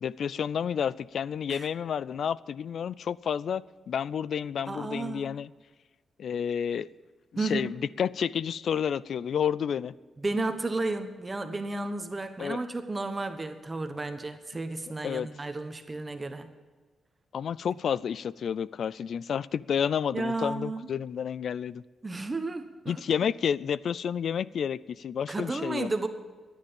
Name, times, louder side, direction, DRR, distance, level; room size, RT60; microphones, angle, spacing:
voice 1, 0.0-5.5 6.2-6.9 7.4-9.9 12.4-12.6 15.0-15.3 17.3-21.8 22.9-25.9, left 8 dB, 70° left, 20 dB, 0.4 m, -30 dB
voice 2, 4.7-5.3 7.4-7.7 10.2-16.5 20.1-20.8 22.0-23.0 25.3-26.1, right 2 dB, 25° right, 7 dB, 1.2 m, -32 dB
14.0 x 10.0 x 7.1 m, 1.4 s
cardioid pair, 90°, 0 cm